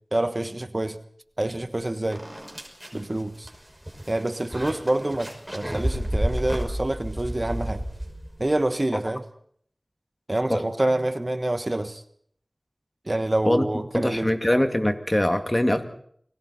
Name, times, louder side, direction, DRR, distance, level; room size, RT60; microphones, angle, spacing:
voice 1, 0.1-1.0 1.4-2.3 2.9-3.5 4.1-7.8 8.4-9.2 10.3-12.0 13.1-14.3, right 1 dB, 40° right, 1.3 m, -27 dB
sound 1, 1.6-1.7 2.1-8.5, right 1 dB, 10° right, 5.8 m, -31 dB
voice 2, 13.9-15.8, left 1 dB, 25° left, 2.3 m, -22 dB
29.5 x 20.5 x 4.3 m
wide cardioid pair, 45°, 0 cm